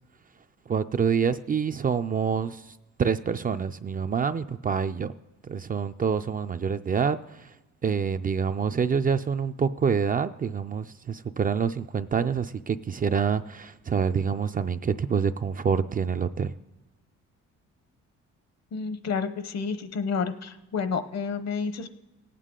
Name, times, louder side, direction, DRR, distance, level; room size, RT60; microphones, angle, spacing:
voice 1, 0.7-2.6 3.0-5.1 5.5-7.5 7.8-16.5, right 6 dB, 30° right, 10 dB, 0.4 m, -26 dB
voice 2, 18.7-21.9, left 5 dB, 60° left, 11 dB, 0.9 m, -30 dB
18.0 x 8.3 x 3.7 m, 1.1 s
cardioid pair, 90°, 30 cm